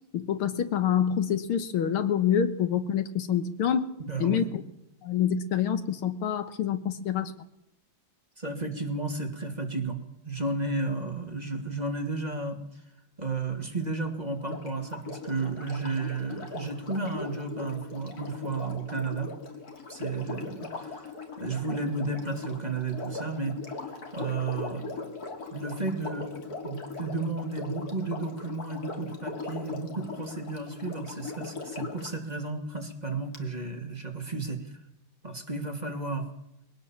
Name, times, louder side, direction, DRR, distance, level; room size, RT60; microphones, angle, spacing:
voice 1, 0.1-3.9 4.2-4.6 5.0-7.3, left 8 dB, 75° left, 11 dB, 2.0 m, -26 dB
voice 2, 4.0-4.5 8.4-12.6 13.2-19.3 19.9-21.1 21.4-23.5 24.1-25.1 25.5-34.7 35.2-36.2, right 3 dB, 20° right, 3 dB, 2.6 m, -33 dB
Sink (filling or washing), 14.4-32.2 33.3-33.4, left 4 dB, 45° left, 2.8 m, -39 dB
22.0 x 17.5 x 7.2 m, 0.83 s
omnidirectional pair, 2.4 m